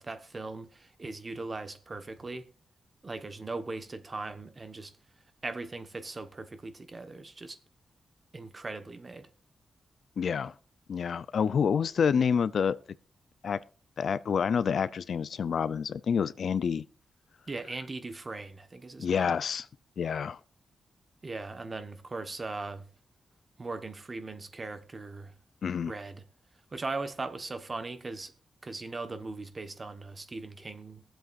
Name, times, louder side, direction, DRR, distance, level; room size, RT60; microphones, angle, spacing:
voice 1, 0.0-2.4 3.0-4.9 5.4-7.6 8.3-9.3 17.5-19.3 21.2-22.9 23.6-25.3 25.9-26.2 26.7-28.3 28.6-31.0, right 3 dB, 35° right, 1.1 m, -39 dB
voice 2, 10.2-10.5 10.9-12.8 13.4-13.6 14.0-16.8 19.0-19.7 20.0-20.4 25.6-25.9, left 6 dB, 70° left, 0.4 m, -28 dB
22.5 x 7.7 x 2.4 m
cardioid pair, 90°, 0 cm